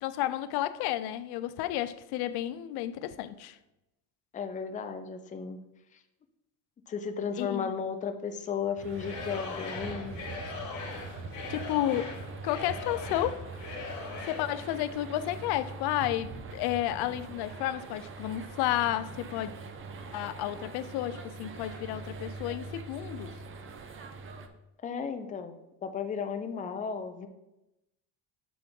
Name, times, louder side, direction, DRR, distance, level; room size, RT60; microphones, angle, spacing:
voice 1, 0.0-3.6 7.4-7.7 11.5-12.1 12.4-13.9 14.2-19.5 20.1-23.3, left 13 dB, 85° left, 0.5 m, -32 dB
voice 2, 4.3-5.6 6.9-10.2 24.8-27.3, left 6 dB, 20° left, 0.4 m, -34 dB
London Bridge - Walking up to Tate Modern, 8.8-24.5, right 3 dB, 35° right, 0.5 m, -43 dB
Singing / Crowd, 8.9-14.6, left 4 dB, 50° left, 1.3 m, -40 dB
6.1 x 3.5 x 5.2 m
cardioid pair, 140°, 38 cm